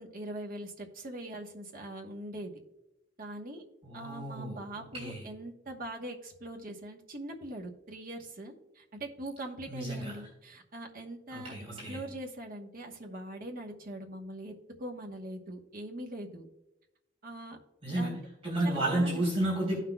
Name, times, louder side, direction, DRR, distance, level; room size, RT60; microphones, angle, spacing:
voice 1, 0.0-2.5 3.2-3.6 3.9-11.5 11.9-14.5 14.8-16.5 17.2-17.6 17.9-18.2 18.6-19.3, right 1 dB, 50° right, 2 dB, 1.2 m, -42 dB
voice 2, 3.8-5.2 9.7-10.2 11.3-12.0 17.8-18.1 18.4-19.8, right 1 dB, 35° right, -5 dB, 2.9 m, -32 dB
16.5 x 5.9 x 2.3 m, 0.92 s
head